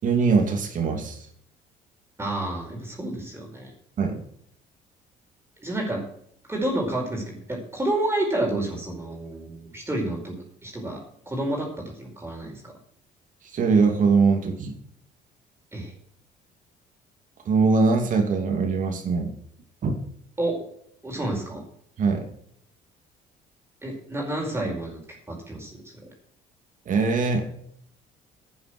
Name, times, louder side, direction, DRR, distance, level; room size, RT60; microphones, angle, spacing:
voice 1, 0.0-1.3 4.0-4.2 13.4-14.8 17.4-19.3 19.8-20.0 22.0-22.3 26.9-27.5, right 4 dB, 50° right, 4 dB, 2.8 m, -22 dB
voice 2, 2.2-3.7 5.6-6.1 6.5-12.7 15.7-15.9 20.4-20.6 21.0-21.6 23.8-26.1, right 1 dB, 15° right, -1 dB, 4.9 m, -30 dB
11.5 x 9.5 x 6.3 m, 0.66 s
cardioid pair, 110°, 17 cm